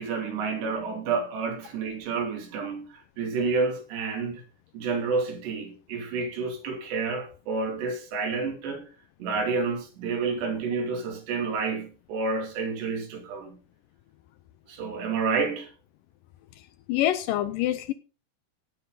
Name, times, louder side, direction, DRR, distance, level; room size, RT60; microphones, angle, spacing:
voice 1, 0.0-4.4 4.7-8.8 9.2-13.6 14.7-15.7, right 4 dB, 85° right, 5.0 m, -29 dB
voice 2, 16.9-17.9, left 13 dB, 85° left, 1.9 m, -25 dB
17.0 x 8.0 x 3.9 m
omnidirectional pair, 4.8 m